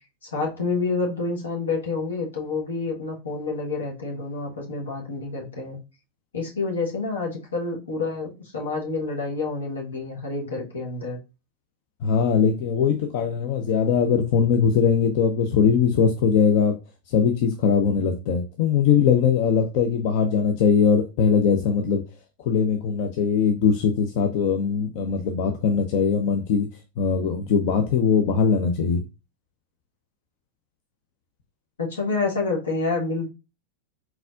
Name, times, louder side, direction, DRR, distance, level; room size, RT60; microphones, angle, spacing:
voice 1, 0.2-5.8 6.3-11.2 31.8-33.3, left 3 dB, 70° left, 1.5 m, -28 dB
voice 2, 12.0-16.8 17.1-22.0 22.5-26.7 27.0-29.0, left 6 dB, 45° left, 0.6 m, -21 dB
4.4 x 4.1 x 2.5 m
figure-of-eight pair, 90°, 0 cm